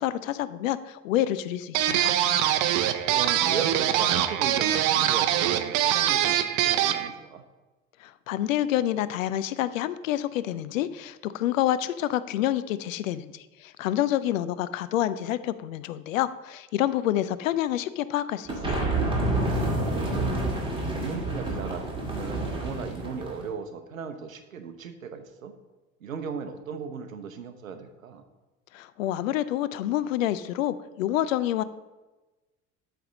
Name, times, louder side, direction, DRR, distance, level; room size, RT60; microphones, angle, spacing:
voice 1, 0.0-2.1 8.0-18.9 28.7-31.6, left 13 dB, 75° left, 15 dB, 0.5 m, -28 dB
sound 1, 1.7-7.1, right 11 dB, 50° right, 0.6 m, -23 dB
voice 2, 3.1-7.4 19.5-20.2 20.9-25.5 26.0-28.2, right 6 dB, 85° right, 8 dB, 0.7 m, -37 dB
sound 2, 18.5-23.5, right 2 dB, 15° right, 1.9 m, -28 dB
8.4 x 3.4 x 6.4 m, 1.2 s
figure-of-eight pair, 65°, 40 cm